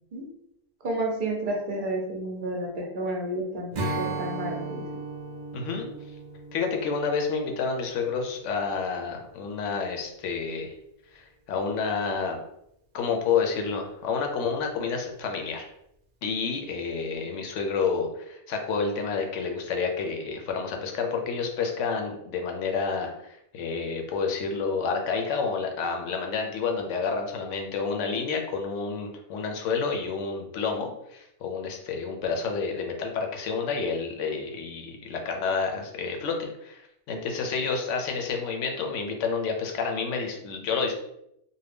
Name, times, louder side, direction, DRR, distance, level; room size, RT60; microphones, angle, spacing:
voice 1, 0.8-4.8, right 1 dB, 50° right, 0 dB, 0.7 m, -31 dB
Strum, 3.7-9.2, right 2 dB, 80° right, 0.4 m, -36 dB
voice 2, 5.5-5.9 6.5-10.7 11.1-12.4 12.9-15.7 16.2-40.9, left 5 dB, 70° left, 3 dB, 0.9 m, -29 dB
2.7 x 2.2 x 3.3 m, 0.79 s
omnidirectional pair, 1.3 m